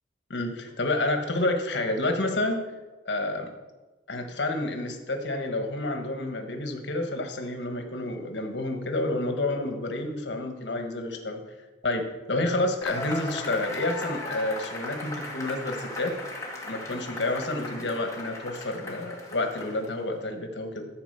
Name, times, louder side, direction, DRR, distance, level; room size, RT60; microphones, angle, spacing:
voice 1, 0.3-2.6 3.0-3.5 4.1-11.4 11.8-16.1 16.6-20.9, left 2 dB, 80° left, 4 dB, 1.4 m, -29 dB
Cheering / Applause / Crowd, 12.8-20.1, left 2 dB, 20° left, 1.8 m, -37 dB
13.5 x 4.9 x 6.7 m, 1.2 s
head